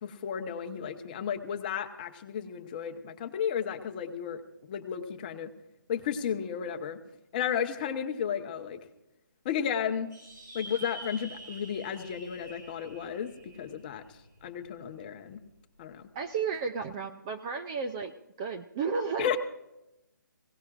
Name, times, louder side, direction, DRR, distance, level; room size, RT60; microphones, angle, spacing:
voice 1, 0.0-4.4 4.7-5.5 5.9-7.0 7.3-8.8 9.4-10.1 10.5-14.0 14.4-15.4 15.8-16.0 19.2-19.4, left 8 dB, 25° left, 7 dB, 1.0 m, -33 dB
sound 1, 10.1-14.9, right 2 dB, 75° right, 6.9 m, -47 dB
voice 2, 16.1-18.1 18.4-19.4, right 5 dB, 15° right, 6 dB, 0.4 m, -33 dB
20.5 x 17.5 x 2.5 m, 0.93 s
hypercardioid pair, 160°, 11 cm